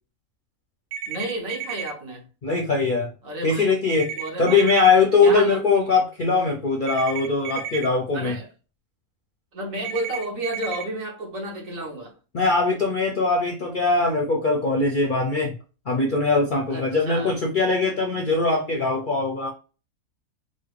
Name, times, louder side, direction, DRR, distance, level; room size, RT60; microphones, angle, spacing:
sound 1, 0.9-1.9 3.9-4.9 6.9-7.9 9.8-10.8, right 8 dB, 90° right, 1.1 m, -33 dB
voice 1, 1.1-2.3 3.2-3.7 4.1-4.8 5.2-5.6 8.1-8.5 9.5-12.2 16.7-17.3, right 1 dB, 65° right, 1.6 m, -32 dB
voice 2, 2.4-3.1 3.4-8.4 12.3-15.5 15.9-19.5, left 3 dB, 50° left, 0.6 m, -21 dB
4.1 x 2.1 x 3.2 m
omnidirectional pair, 1.5 m